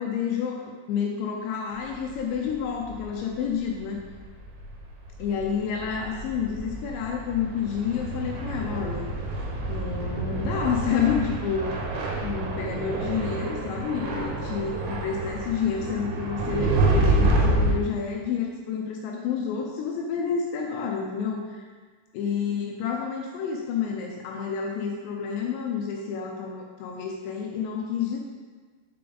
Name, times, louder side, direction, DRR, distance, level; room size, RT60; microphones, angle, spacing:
voice 1, 0.0-4.0 5.2-9.1 9.7-11.8 12.2-21.7 22.1-28.2, left 7 dB, 85° left, 0 dB, 2.8 m, -29 dB
sound 1, 1.9-3.3 3.6-3.7 4.0-17.7, right 2 dB, 90° right, 3.2 m, -28 dB
6.7 x 5.1 x 3.8 m, 1.4 s
omnidirectional pair, 5.2 m